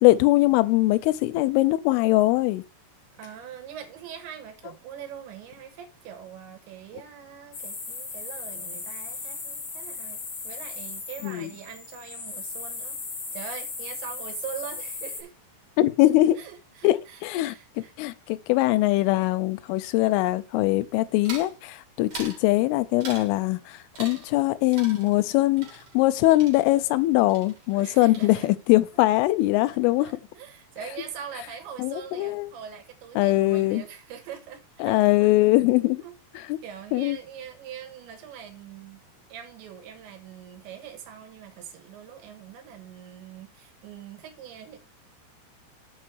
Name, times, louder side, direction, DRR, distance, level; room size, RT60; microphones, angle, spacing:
voice 1, 0.0-2.6 11.2-11.5 15.8-16.4 16.8-17.6 18.0-25.7 25.9-30.1 31.8-32.5 33.2-33.8 34.8-36.0 36.3-36.6 36.9-37.2, left 18 dB, 85° left, 3.2 m, -22 dB
voice 2, 3.1-13.0 13.3-15.3 16.4-17.9 27.8-28.6 28.9-29.1 29.6-29.7 30.0-35.3 36.0-36.1 36.6-39.0 39.3-44.8, right 8 dB, 70° right, 3.5 m, -42 dB
sound 1, 7.5-15.2, left 4 dB, 45° left, 4.1 m, -37 dB
sound 2, 21.2-21.6 22.1-22.4 23.0-23.4 23.9-24.5 24.7-27.0 27.3-27.9 28.1-28.7, right 4 dB, 40° right, 4.1 m, -42 dB
8.6 x 5.4 x 6.1 m
omnidirectional pair, 5.6 m